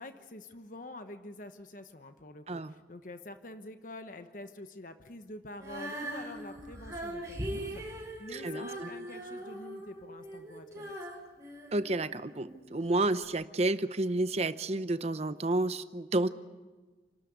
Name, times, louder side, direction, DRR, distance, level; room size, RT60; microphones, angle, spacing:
voice 1, 0.0-11.0, left 1 dB, 45° left, 8 dB, 1.1 m, -47 dB
Female singing, 5.6-12.6 13.2-13.3, right 1 dB, 20° right, 4.8 m, -41 dB
voice 2, 8.3-8.9 11.7-16.3, right 2 dB, 35° right, 12 dB, 0.7 m, -30 dB
28.5 x 13.0 x 9.5 m, 1.3 s
head